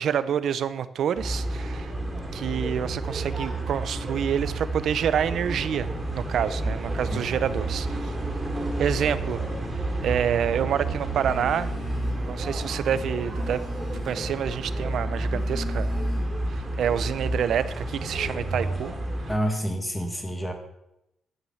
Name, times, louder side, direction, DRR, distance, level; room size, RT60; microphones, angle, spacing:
voice 1, 0.0-1.9 2.3-5.9 6.1-8.1 8.8-9.4 10.0-11.7 12.2-13.6 14.1-15.9 16.5-18.9, right 8 dB, 60° right, 15 dB, 0.7 m, -27 dB
sound 1, 1.2-19.4, right 2 dB, 15° right, 3.0 m, -30 dB
Telephone, 11.1-12.4 12.8-14.4 15.1-16.6, left 3 dB, 50° left, 3.5 m, -42 dB
voice 2, 12.0-12.4 15.3-15.5 19.3-20.5, equal, 10° left, 5 dB, 1.8 m, -29 dB
11.0 x 9.2 x 7.2 m, 0.83 s
wide cardioid pair, 175°, 0 cm